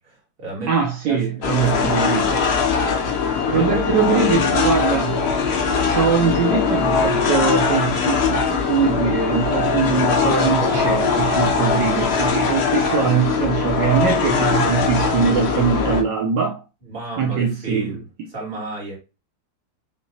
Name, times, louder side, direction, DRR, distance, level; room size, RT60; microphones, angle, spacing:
voice 1, 0.0-0.7 1.0-1.2 1.7-1.9 3.5-4.3 10.2-11.0 16.9-18.0 18.3-19.0, right 3 dB, 30° right, 2.0 m, -31 dB
voice 2, 0.7-2.4 3.5-5.3 5.8-16.6 17.2-18.0, right 6 dB, 70° right, 1.4 m, -22 dB
sound 1, 1.4-16.0, left 5 dB, 80° left, 0.5 m, -21 dB
sound 2, 1.6-10.4, left 6 dB, 55° left, 1.5 m, -39 dB
6.2 x 2.8 x 2.7 m
omnidirectional pair, 2.0 m